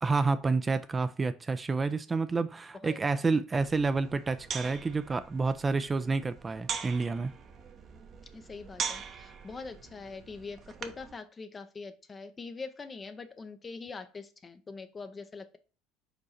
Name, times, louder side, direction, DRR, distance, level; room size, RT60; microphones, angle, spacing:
voice 1, 0.0-7.3, right 4 dB, 20° right, 0.4 m, -29 dB
voice 2, 2.8-3.3 8.3-15.6, left 4 dB, 25° left, 0.6 m, -43 dB
sound 1, 3.5-11.1, right 6 dB, 40° right, 0.8 m, -42 dB
5.0 x 4.7 x 4.2 m
figure-of-eight pair, 65°, 0 cm